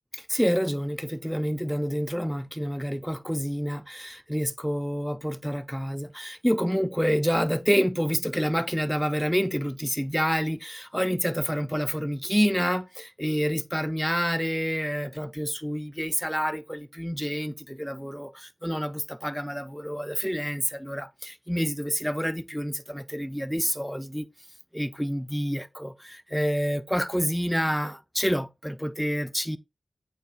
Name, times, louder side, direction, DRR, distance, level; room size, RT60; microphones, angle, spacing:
voice 1, 0.1-24.3 24.7-29.6, equal, ahead, 0.8 m, -28 dB
8.3 x 7.3 x 2.3 m
cardioid pair, 45°, 0 cm